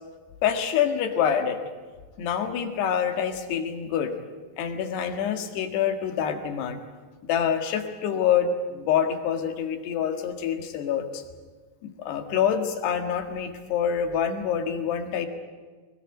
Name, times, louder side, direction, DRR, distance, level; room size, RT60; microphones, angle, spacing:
voice 1, 0.4-1.6 2.2-4.2 4.6-6.8 7.2-11.2 11.8-15.3, left 8 dB, 90° left, 6 dB, 4.0 m, -26 dB
21.5 x 20.0 x 9.0 m, 1.4 s
omnidirectional pair, 4.6 m